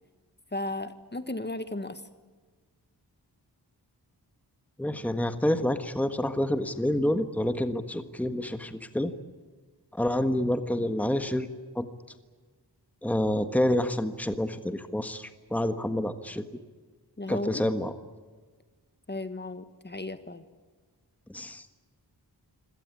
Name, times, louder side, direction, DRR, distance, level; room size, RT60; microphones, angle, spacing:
voice 1, 0.5-2.0 17.2-17.6 19.1-20.4, left 2 dB, 25° left, 10 dB, 1.6 m, -35 dB
voice 2, 4.8-9.1 9.9-11.5 11.7-11.9 13.0-16.4 17.3-17.9 21.3-21.6, left 1 dB, 5° left, 9 dB, 1.5 m, -28 dB
25.5 x 17.5 x 9.7 m, 1.4 s
wide cardioid pair, 60°, 42 cm